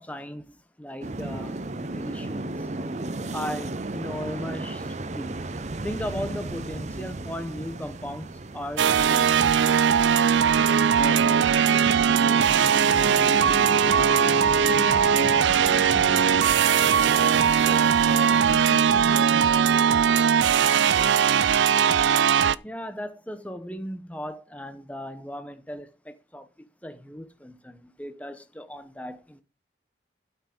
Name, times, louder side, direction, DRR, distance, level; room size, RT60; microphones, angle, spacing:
voice 1, 0.0-2.5 3.3-5.4 5.8-8.3 8.5-9.3 22.6-26.5 26.8-29.4, left 1 dB, 10° left, 0.9 m, -37 dB
sound 1, 1.0-18.8, right 2 dB, 40° right, 0.6 m, -36 dB
sound 2, 8.8-22.5, right 7 dB, 80° right, 0.4 m, -20 dB
voice 2, 10.9-16.4 17.0-19.4, left 1 dB, 50° left, 1.3 m, -40 dB
12.0 x 5.9 x 5.1 m
head